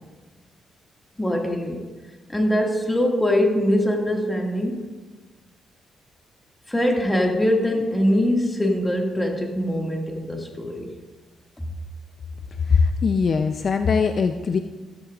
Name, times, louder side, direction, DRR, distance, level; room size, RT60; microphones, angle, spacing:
voice 1, 1.2-1.8 2.3-4.9 6.7-10.9, left 1 dB, 10° left, 1 dB, 2.0 m, -22 dB
voice 2, 12.5-14.6, left 5 dB, 50° left, 7 dB, 0.5 m, -21 dB
15.0 x 13.0 x 2.5 m, 1.2 s
cardioid pair, 95°, 0 cm